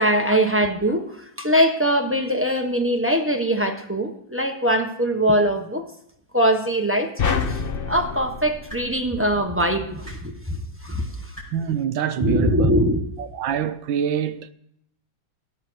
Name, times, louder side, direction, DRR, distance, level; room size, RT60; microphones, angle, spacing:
voice 1, 0.0-5.9 6.3-7.1 7.5-7.6 7.9-11.4 12.2-13.1, equal, 10° right, 0.6 m, -22 dB
sound 1, 7.2-9.6, left 6 dB, 70° left, 0.5 m, -27 dB
sound 2, 7.4-7.5 8.7-8.8 10.0-10.2 11.3-11.5 12.7-12.8, right 1 dB, 5° left, 6.0 m, -39 dB
voice 2, 11.5-12.8 13.2-14.5, right 8 dB, 75° right, 1.4 m, -25 dB
17.5 x 7.6 x 6.4 m
omnidirectional pair, 2.2 m